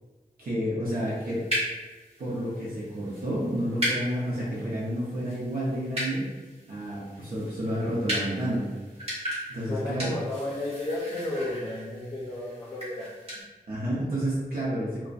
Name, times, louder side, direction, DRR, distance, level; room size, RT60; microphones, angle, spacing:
voice 1, 0.4-1.5 2.2-6.3 6.7-8.7 9.5-10.1 13.7-15.1, equal, 80° right, -7 dB, 0.6 m, -30 dB
sound 1, 0.9-13.4, equal, 45° right, 1.1 m, -37 dB
voice 2, 9.7-13.1, left 1 dB, 35° left, -6 dB, 0.5 m, -33 dB
2.5 x 2.0 x 2.3 m, 1.3 s
wide cardioid pair, 90°, 15 cm